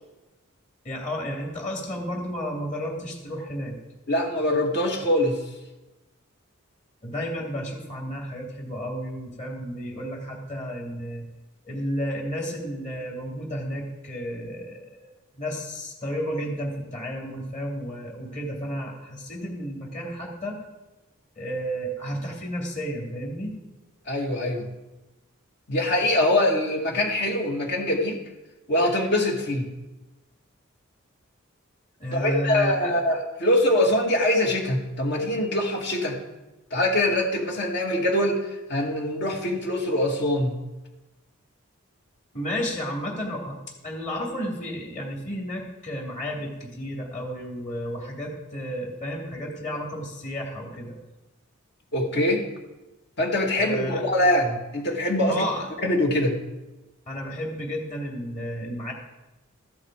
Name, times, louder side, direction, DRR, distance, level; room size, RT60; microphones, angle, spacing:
voice 1, 0.8-3.8 7.0-11.3 11.6-15.1 15.4-20.6 21.4-23.5 32.0-32.9 42.3-43.6 43.8-50.9 53.6-54.0 55.3-55.7 57.1-58.9, equal, 35° left, 0 dB, 2.9 m, -32 dB
voice 2, 4.1-5.4 24.1-24.7 25.7-28.2 28.7-29.7 32.1-36.2 36.7-40.6 51.9-52.4 53.2-55.4 55.8-56.4, left 1 dB, 55° left, 1 dB, 2.3 m, -23 dB
14.0 x 11.0 x 4.9 m, 1.1 s
head